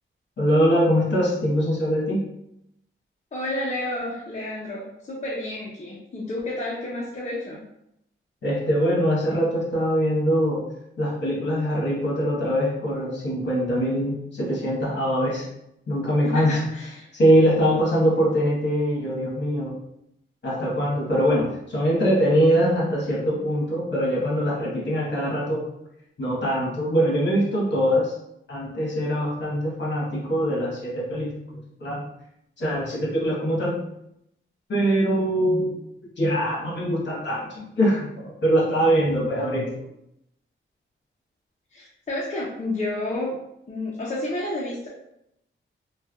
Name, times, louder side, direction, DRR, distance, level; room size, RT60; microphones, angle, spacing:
voice 1, 0.4-2.2 8.4-10.7 11.0-15.5 15.9-16.6 17.1-19.8 20.4-25.7 26.2-28.1 28.5-31.4 31.8-32.0 32.6-33.8 34.7-35.7 36.2-39.7, equal, 55° left, -5 dB, 1.1 m, -23 dB
voice 2, 3.3-7.6 16.2-17.1 41.7-43.4 43.7-44.9, left 1 dB, 35° left, -6 dB, 0.5 m, -30 dB
3.2 x 2.1 x 2.3 m, 0.78 s
wide cardioid pair, 145°, 21 cm